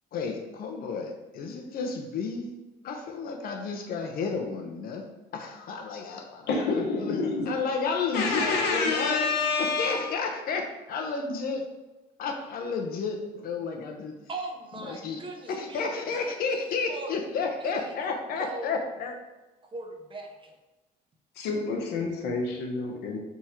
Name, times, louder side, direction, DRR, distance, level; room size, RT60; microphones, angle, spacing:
voice 1, 0.1-2.5 2.8-5.1 5.3-9.2 9.6-11.6 12.2-14.2 14.8-15.2 15.5-19.1, left 4 dB, 60° left, 3 dB, 0.8 m, -32 dB
voice 2, 6.5-7.5 8.1-10.0 21.4-23.2, left 4 dB, 80° left, 0 dB, 1.0 m, -28 dB
voice 3, 14.3-17.3 17.6-17.9 18.3-18.7 19.6-20.6, right 3 dB, 30° right, 3 dB, 0.7 m, -40 dB
3.6 x 3.1 x 4.3 m, 1.1 s
cardioid pair, 110°, 17 cm